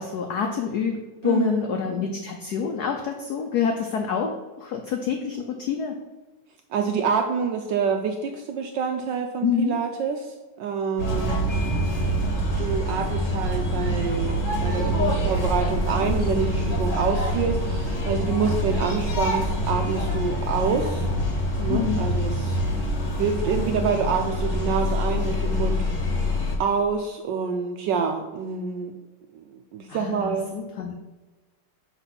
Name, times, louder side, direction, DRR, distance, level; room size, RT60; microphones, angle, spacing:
voice 1, 0.0-5.9 9.4-9.8 21.7-22.0 29.9-30.9, left 7 dB, 90° left, 3 dB, 0.8 m, -27 dB
voice 2, 1.2-1.7 6.7-11.5 12.6-21.1 21.6-22.6 23.2-26.3 26.6-29.0 29.3-30.5, right 6 dB, 80° right, 4 dB, 1.0 m, -27 dB
sound 1, 11.0-26.6, equal, 40° left, 1.4 m, -25 dB
5.8 x 3.6 x 5.7 m, 1.2 s
omnidirectional pair, 2.4 m